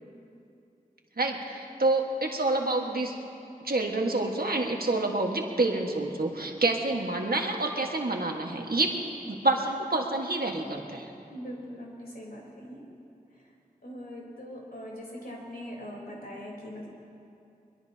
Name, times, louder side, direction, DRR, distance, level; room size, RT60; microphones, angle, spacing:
voice 1, 1.2-3.1 3.6-8.9 9.3-11.1, right 2 dB, 85° right, 1 dB, 1.6 m, -28 dB
voice 2, 11.3-12.8 13.3-13.5 13.8-16.9, equal, 90° left, -3 dB, 3.9 m, -41 dB
23.0 x 21.5 x 2.9 m, 2.6 s
wide cardioid pair, 45°, 15 cm